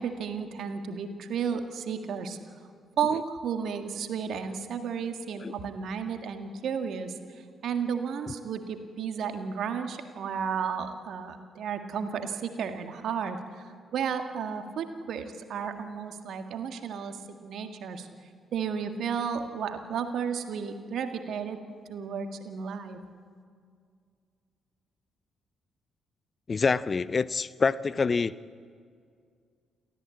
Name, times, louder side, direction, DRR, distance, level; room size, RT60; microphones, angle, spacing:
voice 1, 0.0-2.4 3.0-17.2 17.4-18.1 18.5-21.6 21.9-23.0, right 7 dB, 60° right, 6 dB, 1.8 m, -33 dB
voice 2, 26.5-28.3, left 4 dB, 40° left, 18 dB, 0.6 m, -26 dB
29.0 x 13.5 x 8.6 m, 2.2 s
hypercardioid pair, 40°, 0 cm